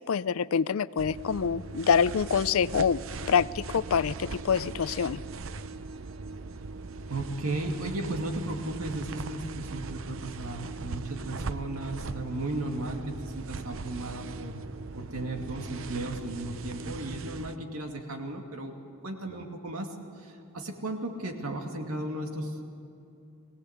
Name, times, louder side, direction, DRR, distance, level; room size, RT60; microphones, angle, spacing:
voice 1, 0.0-3.0 3.3-5.2, left 6 dB, 70° left, 19 dB, 0.4 m, -26 dB
sound 1, 1.0-17.6, right 3 dB, 65° right, 0.7 m, -39 dB
voice 2, 7.1-14.6 15.0-18.8 19.0-19.9 20.5-22.7, right 2 dB, 90° right, 2 dB, 2.5 m, -35 dB
22.5 x 17.0 x 8.2 m, 2.7 s
head